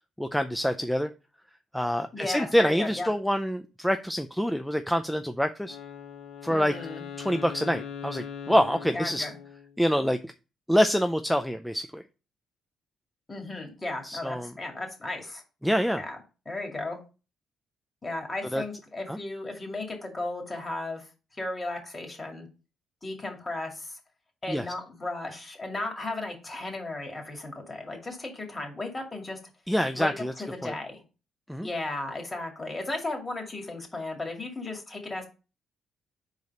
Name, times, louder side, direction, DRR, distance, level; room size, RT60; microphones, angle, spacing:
voice 1, 0.2-1.1 1.7-5.8 6.4-6.7 7.2-9.3 9.8-10.3 10.7-12.0 14.0-14.5 15.6-16.0 18.5-18.6 19.1-19.2 24.5-24.7 29.7-30.3 30.6-30.7 31.5-31.7, equal, ahead, 7 dB, 0.4 m, -26 dB
voice 2, 2.1-3.1 6.5-7.0 8.9-9.3 13.3-15.4 16.0-16.2 16.5-17.0 18.0-21.1 21.3-22.5 23.0-24.0 24.4-29.4 29.9-31.0 31.6-35.3, left 2 dB, 25° left, 2 dB, 2.1 m, -35 dB
Wind instrument woodwind instrument, 5.6-9.8, left 7 dB, 85° left, 1.3 m, -41 dB
4.8 x 4.1 x 5.3 m, 0.32 s
cardioid pair, 90°, 0 cm